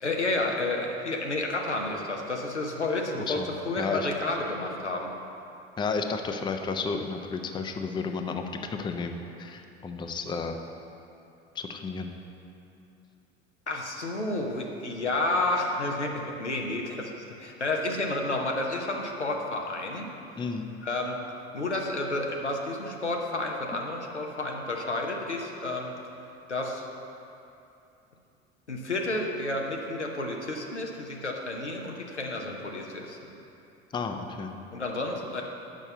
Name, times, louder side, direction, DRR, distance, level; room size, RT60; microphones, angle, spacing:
voice 1, 0.0-5.1 13.7-17.1 17.4-20.1 20.8-21.2 21.5-25.9 26.5-26.9 28.7-33.3 34.7-35.4, left 2 dB, 90° left, 1 dB, 0.8 m, -30 dB
voice 2, 3.1-3.5 3.8-4.1 5.8-8.4 8.7-10.6 11.5-12.1 20.4-20.7 33.9-34.6, left 4 dB, 15° left, 5 dB, 0.5 m, -32 dB
6.3 x 5.4 x 6.8 m, 2.8 s
figure-of-eight pair, 70°, 33 cm